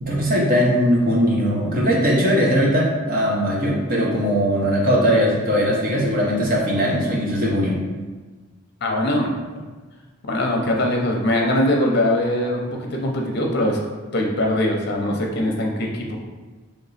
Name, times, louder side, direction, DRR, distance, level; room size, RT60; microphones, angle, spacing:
voice 1, 0.0-7.8, equal, 40° right, -3 dB, 0.9 m, -19 dB
voice 2, 8.8-9.3 10.2-13.8 14.1-16.2, left 1 dB, 50° left, 1 dB, 0.7 m, -21 dB
3.4 x 3.0 x 4.1 m, 1.3 s
head